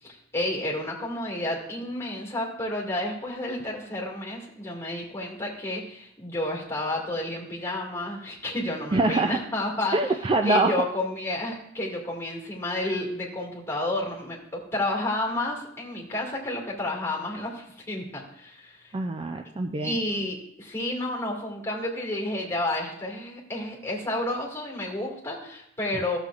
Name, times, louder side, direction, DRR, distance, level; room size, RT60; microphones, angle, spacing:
voice 1, 0.0-10.0 10.4-18.9 19.8-26.2, left 1 dB, 15° left, -2 dB, 2.0 m, -31 dB
voice 2, 8.9-9.4 9.9-10.7 18.9-20.0, right 2 dB, 25° right, 5 dB, 0.3 m, -24 dB
14.0 x 7.0 x 2.4 m, 0.73 s
head